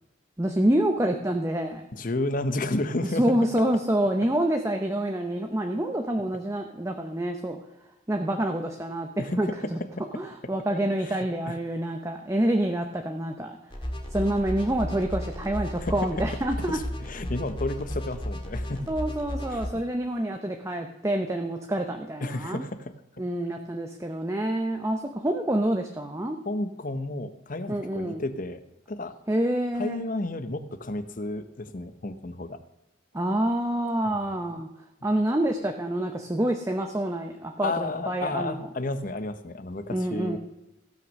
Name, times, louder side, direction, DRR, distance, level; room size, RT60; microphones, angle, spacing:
voice 1, 0.4-1.9 3.2-7.6 8.1-9.1 9.4-9.8 10.1-13.6 14.1-16.8 18.9-22.6 23.2-26.4 27.7-28.2 29.3-30.0 33.1-34.7 35.0-38.6 39.9-40.4, right 1 dB, 15° right, 4 dB, 0.8 m, -27 dB
voice 2, 1.9-3.4 9.2-10.0 10.7-11.6 15.8-16.2 16.7-18.9 19.5-19.6 22.2-22.9 26.4-28.6 28.9-29.1 29.7-32.6 34.0-34.2 34.5-34.6 37.6-40.4, left 2 dB, 45° left, 11 dB, 0.9 m, -32 dB
sound 1, 13.7-19.7, equal, 25° left, 1.8 m, -34 dB
16.0 x 6.2 x 6.4 m, 0.92 s
head